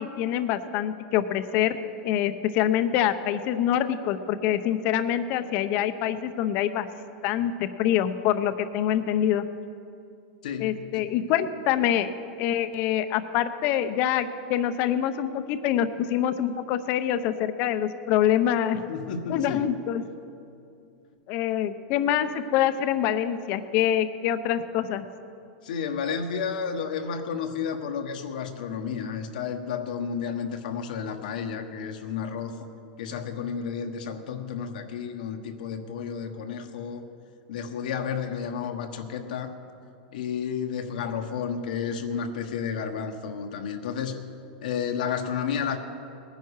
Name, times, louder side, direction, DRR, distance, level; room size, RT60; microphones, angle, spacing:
voice 1, 0.0-1.8 2.0-6.9 7.2-9.4 10.6-12.1 12.4-18.8 19.3-20.0 21.3-25.0, left 10 dB, 40° left, 11 dB, 0.7 m, -25 dB
voice 2, 10.4-11.1 18.9-19.7 25.6-32.5 33.0-37.1 37.5-39.5 40.1-44.2 44.6-45.8, left 7 dB, 75° left, 4 dB, 1.2 m, -31 dB
19.5 x 10.5 x 4.8 m, 2.6 s
supercardioid pair, 155°, 5 cm